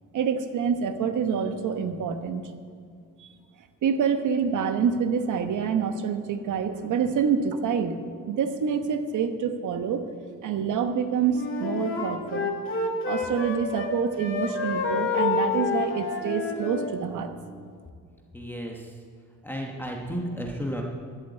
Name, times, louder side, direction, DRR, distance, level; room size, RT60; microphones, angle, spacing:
voice 1, 0.1-2.5 3.2-3.3 3.8-8.0 8.3-10.0 10.4-12.5 13.0-17.3, right 7 dB, 70° right, 8 dB, 1.1 m, -27 dB
Wind instrument woodwind instrument, 11.3-13.9 14.2-16.9, left 4 dB, 40° left, 1.8 m, -28 dB
voice 2, 18.3-18.9 19.4-20.8, equal, 5° left, -1 dB, 1.2 m, -33 dB
11.5 x 8.2 x 8.0 m, 2.1 s
cardioid pair, 125°, 32 cm